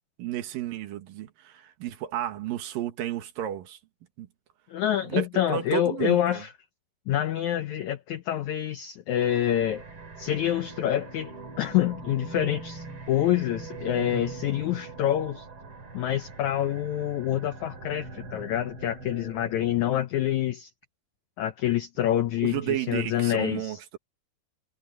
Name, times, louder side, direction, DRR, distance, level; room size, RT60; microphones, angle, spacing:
voice 1, 0.2-3.8 4.2-4.3 5.1-6.4 22.4-24.0, right 12 dB, 70° right, 3.0 m, -32 dB
voice 2, 4.7-6.5 7.1-9.8 10.2-15.5 15.9-20.7 21.4-23.8, left 11 dB, 80° left, 1.7 m, -27 dB
sound 1, 9.1-19.9, right 4 dB, 35° right, 3.5 m, -42 dB
omnidirectional pair, 4.4 m